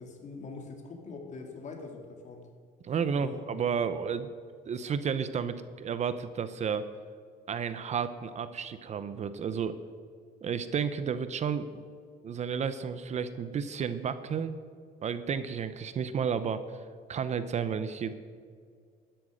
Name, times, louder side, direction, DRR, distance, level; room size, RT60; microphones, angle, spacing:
voice 1, 0.0-2.5 3.1-3.4, left 4 dB, 45° left, 3 dB, 2.6 m, -43 dB
voice 2, 2.8-4.3 4.7-6.8 7.5-9.8 10.4-11.8 12.2-14.6 15.0-16.8 17.1-18.1, right 7 dB, 40° right, 12 dB, 0.7 m, -32 dB
12.5 x 10.5 x 5.2 m, 2.1 s
cardioid pair, 110°, 17 cm